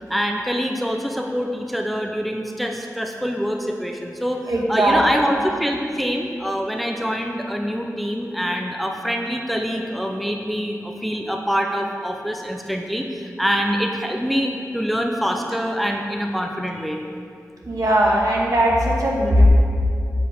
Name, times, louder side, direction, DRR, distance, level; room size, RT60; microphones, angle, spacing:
voice 1, 0.1-4.4 4.7-17.0, equal, ahead, 2 dB, 1.0 m, -25 dB
voice 2, 4.5-5.0 17.7-19.4, right 1 dB, 70° right, -3 dB, 1.9 m, -18 dB
9.4 x 5.6 x 7.6 m, 2.3 s
cardioid pair, 45°, 6 cm